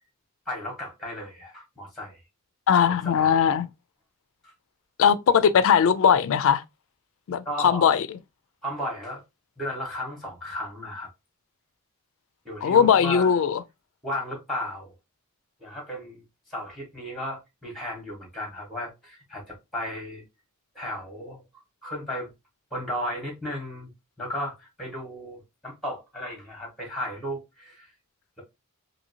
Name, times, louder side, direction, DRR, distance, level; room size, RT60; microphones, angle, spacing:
voice 1, 0.5-2.2 2.7-3.4 4.4-4.5 7.4-7.9 8.6-9.2 9.6-11.1 12.4-13.4 14.0-14.9 15.6-16.2 16.5-20.2 20.7-21.4 21.8-22.3 22.7-23.9 24.2-27.9, equal, ahead, 1.2 m, -34 dB
voice 2, 2.7-3.7 5.0-6.6 7.3-8.2 12.6-13.6, left 7 dB, 60° left, 0.3 m, -20 dB
2.8 x 2.7 x 2.7 m
head